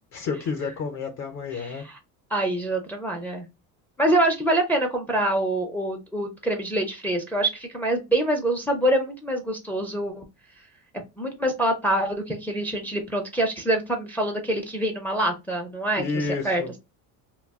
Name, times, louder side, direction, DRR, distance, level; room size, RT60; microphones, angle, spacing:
voice 1, 0.1-1.9 16.0-16.7, left 4 dB, 45° left, 0.7 m, -30 dB
voice 2, 1.5-2.0 2.3-3.5 4.0-10.2 11.2-16.0 16.4-16.8, right 1 dB, 5° left, 0.4 m, -25 dB
2.2 x 2.2 x 3.4 m
cardioid pair, 115°, 38 cm